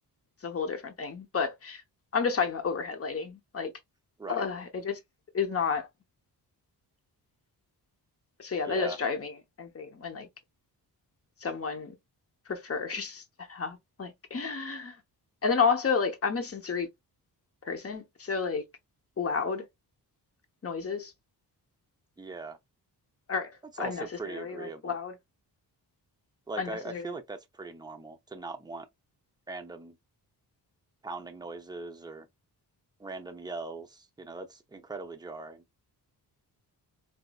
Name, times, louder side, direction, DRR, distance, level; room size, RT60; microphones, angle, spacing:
voice 1, 0.4-1.8 2.1-3.7 4.3-5.0 5.3-5.9 8.4-9.3 9.6-10.3 11.4-11.9 12.5-13.2 13.5-14.9 15.4-16.9 17.7-18.6 19.2-19.6 20.6-21.1 23.3-23.5 23.8-25.1 26.6-27.0, left 5 dB, 35° left, 0.8 m, -31 dB
voice 2, 8.6-9.0 22.2-22.6 23.7-25.0 26.5-28.9 29.5-30.0 31.0-32.3 33.0-35.6, right 3 dB, 10° right, 0.6 m, -40 dB
4.0 x 2.6 x 2.3 m
cardioid pair, 100°, 41 cm